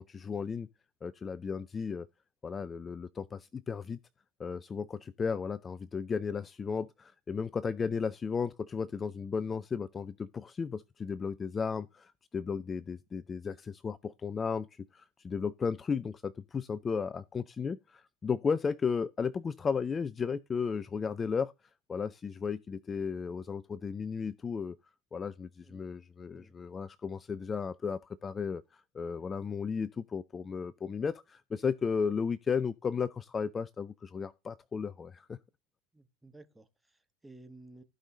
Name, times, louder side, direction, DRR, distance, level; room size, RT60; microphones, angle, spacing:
voice 1, 0.1-0.7 1.0-2.1 2.4-4.0 4.4-21.5 21.9-24.8 25.1-35.4, left 5 dB, 25° left, 0.4 m, -34 dB
voice 2, 35.9-37.8, right 2 dB, 10° right, 1.5 m, -54 dB
15.0 x 5.4 x 3.8 m
figure-of-eight pair, 80°, 0 cm